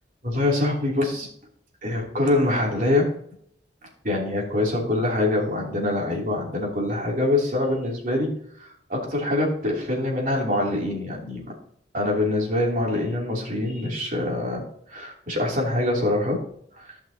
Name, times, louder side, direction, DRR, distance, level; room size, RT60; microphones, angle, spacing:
voice 1, 0.2-1.3 1.8-3.0 4.0-11.5 11.9-16.4 16.8-16.9, left 2 dB, 50° right, -2 dB, 3.0 m, -24 dB
15.0 x 5.9 x 2.8 m, 0.67 s
head